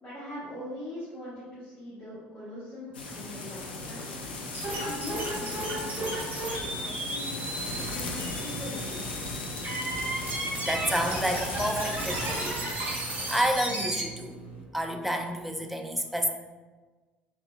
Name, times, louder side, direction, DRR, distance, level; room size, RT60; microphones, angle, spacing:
voice 1, 0.0-4.1 4.7-7.3 7.7-9.0, left 1 dB, 30° left, -12 dB, 1.3 m, -42 dB
sound 1, 2.9-12.5, left 3 dB, 75° left, 0.3 m, -37 dB
sound 2, 4.5-14.0, right 1 dB, 35° right, 0.8 m, -34 dB
sound 3, 6.6-14.6, right 3 dB, 75° right, 0.5 m, -44 dB
voice 2, 10.6-14.4 14.7-16.3, equal, ahead, 3 dB, 0.3 m, -30 dB
3.6 x 2.2 x 2.3 m, 1.3 s
figure-of-eight pair, 60°, 5 cm